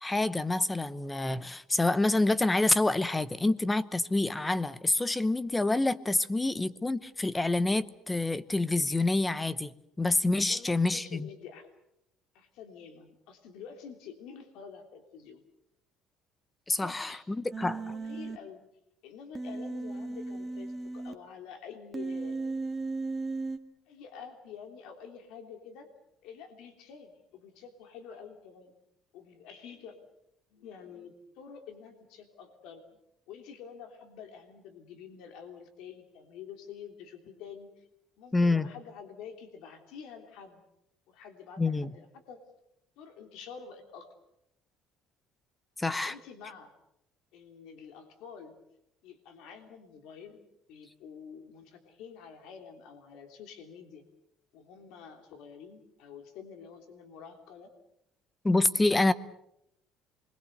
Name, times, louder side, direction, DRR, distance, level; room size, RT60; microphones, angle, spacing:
voice 1, 0.0-9.7 10.0-11.3 16.7-17.8 38.3-38.7 41.6-41.9 45.8-46.1 58.4-59.1, left 2 dB, 10° left, 0.9 m, -27 dB
voice 2, 10.5-11.7 12.3-15.4 16.7-17.2 17.9-18.7 19.0-22.4 23.9-25.9 26.2-28.7 29.1-30.0 30.5-33.0 33.3-37.9 38.2-40.6 41.1-42.4 43.0-44.1 46.1-46.7 47.3-48.6 49.0-54.0 54.5-57.7, left 7 dB, 80° left, 3.2 m, -48 dB
Human voice, 17.5-18.4 19.3-21.1 21.9-23.6, right 3 dB, 20° right, 1.7 m, -36 dB
27.5 x 22.0 x 6.8 m
cardioid pair, 135°, 0 cm